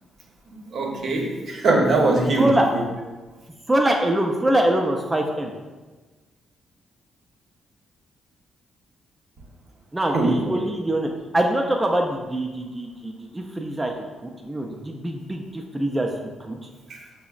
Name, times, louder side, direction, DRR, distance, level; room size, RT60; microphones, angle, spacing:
voice 1, 0.5-2.8 10.1-10.6 16.9-17.0, right 2 dB, 65° right, 0 dB, 0.7 m, -22 dB
voice 2, 3.7-5.5 9.9-13.9 14.2-16.1 16.4-16.7, right 1 dB, 15° right, 1 dB, 0.3 m, -24 dB
5.7 x 2.0 x 2.4 m, 1.3 s
cardioid pair, 90°, 0 cm